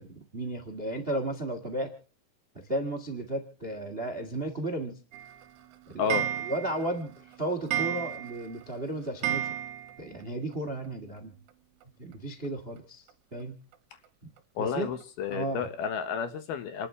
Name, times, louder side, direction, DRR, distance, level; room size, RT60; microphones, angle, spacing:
voice 1, 0.0-1.9 2.7-5.0 5.9-9.5 10.0-11.3 12.0-13.0 13.3-13.5 14.6-14.9 15.3-15.6, right 1 dB, 45° right, 6 dB, 0.7 m, -34 dB
Clock, 5.1-10.2 10.5-10.6 10.8-10.9 11.2-11.3 12.4-12.5 13.1-13.2 13.7-13.8 14.4-14.5 15.0-15.1 15.6-15.7, right 10 dB, 75° right, 3.1 m, -34 dB
voice 2, 14.6-16.9, left 7 dB, 65° left, 9 dB, 2.9 m, -31 dB
28.5 x 12.0 x 3.4 m, 0.40 s
omnidirectional pair, 5.1 m